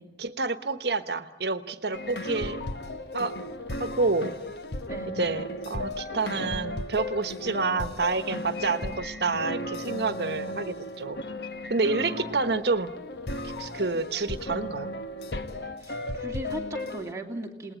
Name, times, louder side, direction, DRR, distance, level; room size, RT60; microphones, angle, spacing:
voice 1, 0.2-2.6 3.1-3.4 3.8-4.3 5.1-11.2 11.7-12.9 13.4-14.9, right 3 dB, 65° right, 11 dB, 1.3 m, -28 dB
sound 1, 1.9-17.1, left 1 dB, 65° left, 1.3 m, -35 dB
voice 2, 11.9-12.6 13.9-14.1 15.8-17.7, right 1 dB, 15° right, 0 dB, 2.9 m, -38 dB
28.0 x 20.0 x 9.1 m, 0.95 s
head